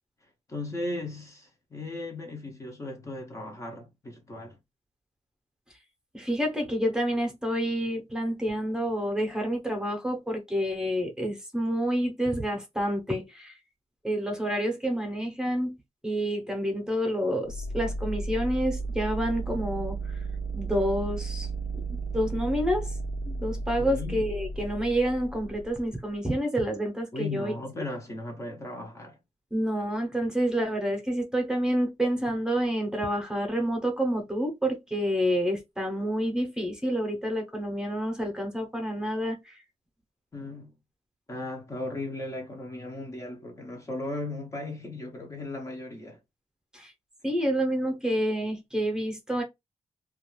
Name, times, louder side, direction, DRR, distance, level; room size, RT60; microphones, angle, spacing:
voice 1, 0.5-4.6 23.8-24.2 27.1-29.2 40.3-40.8 41.3-46.2, left 2 dB, 25° left, 0.6 m, -36 dB
voice 2, 6.1-13.6 14.0-15.8 16.0-20.0 20.5-21.5 21.9-22.9 23.2-27.5 29.5-39.6 46.7-46.9 47.2-49.4, equal, 5° right, 0.8 m, -28 dB
sound 1, 17.5-26.2, right 3 dB, 80° left, 0.5 m, -34 dB
2.4 x 2.3 x 3.1 m
wide cardioid pair, 150°, 12 cm